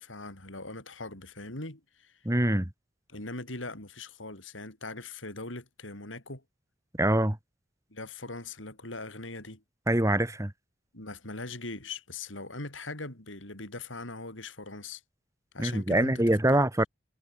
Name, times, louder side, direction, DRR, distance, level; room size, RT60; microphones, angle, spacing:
voice 1, 0.0-2.2 3.1-6.4 7.9-9.6 10.9-15.0 15.5-16.6, left 2 dB, 85° left, 7.2 m, -41 dB
voice 2, 2.2-2.7 7.0-7.4 9.9-10.5 15.6-16.9, right 1 dB, 15° right, 1.5 m, -24 dB
head